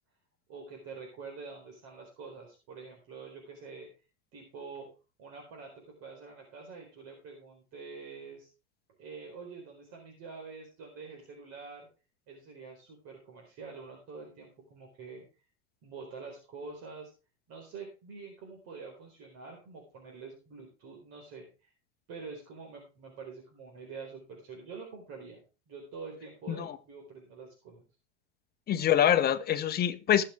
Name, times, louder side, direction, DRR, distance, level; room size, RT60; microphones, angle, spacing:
voice 1, 0.5-3.9 4.3-4.9 5.2-8.5 9.0-11.9 12.3-15.2 15.8-17.1 17.5-21.7 22.1-27.8, right 4 dB, 45° right, 0 dB, 4.5 m, -46 dB
voice 2, 28.7-30.2, left 10 dB, 25° left, 10 dB, 1.1 m, -25 dB
19.5 x 6.8 x 3.5 m, 0.31 s
supercardioid pair, 125°, 35 cm